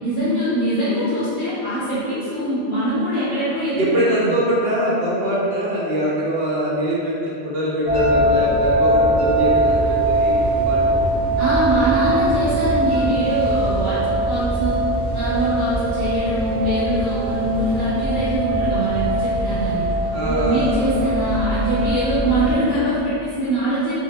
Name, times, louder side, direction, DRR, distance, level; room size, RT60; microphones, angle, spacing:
voice 1, 0.0-3.9 4.2-4.4 11.4-14.8 15.1-19.9 20.2-23.9, equal, 55° left, -12 dB, 0.7 m, -23 dB
voice 2, 3.8-11.0 20.1-20.8, equal, 65° right, -6 dB, 0.7 m, -23 dB
sound 1, 7.9-22.6, right 1 dB, 5° right, 1.0 m, -21 dB
2.0 x 2.0 x 3.2 m, 2.6 s
omnidirectional pair, 1.1 m